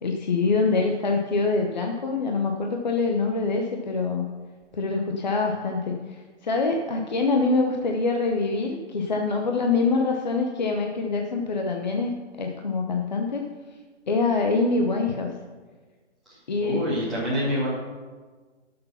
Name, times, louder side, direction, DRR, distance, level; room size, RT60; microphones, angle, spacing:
voice 1, 0.0-4.2 4.7-13.5 14.1-15.3 16.5-16.8, left 3 dB, 40° left, 2 dB, 0.9 m, -25 dB
voice 2, 16.3-17.7, equal, ahead, -12 dB, 2.3 m, -27 dB
11.0 x 6.8 x 5.7 m, 1.4 s
hypercardioid pair, 175°, 35 cm